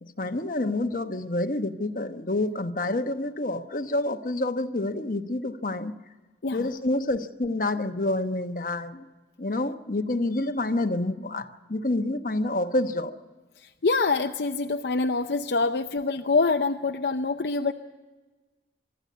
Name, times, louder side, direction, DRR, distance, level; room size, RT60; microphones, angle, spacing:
voice 1, 0.0-5.9 6.5-9.0 9.4-13.1, left 2 dB, 50° left, 6 dB, 1.0 m, -28 dB
voice 2, 13.6-17.7, left 3 dB, 65° left, 5 dB, 0.6 m, -25 dB
24.0 x 13.0 x 9.3 m, 1.3 s
head